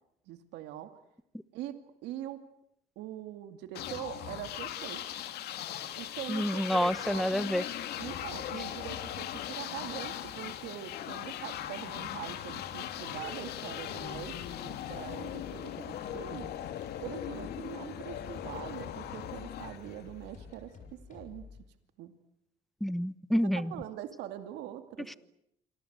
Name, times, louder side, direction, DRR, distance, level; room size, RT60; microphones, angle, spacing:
voice 1, 0.3-0.9 1.5-1.7 2.0-2.4 3.0-5.0 6.0-7.2 8.0-16.5 17.0-21.4 22.0-22.1 23.4-25.2, right 12 dB, 90° right, 8 dB, 2.4 m, -43 dB
sound 1, 3.7-20.5, left 11 dB, 75° left, 2.7 m, -39 dB
voice 2, 6.3-7.6 22.8-23.7, equal, ahead, 16 dB, 1.1 m, -28 dB
sound 2, 13.9-21.6, left 5 dB, 50° left, 7.2 m, -51 dB
27.5 x 25.0 x 8.1 m, 0.76 s
cardioid pair, 110°, 17 cm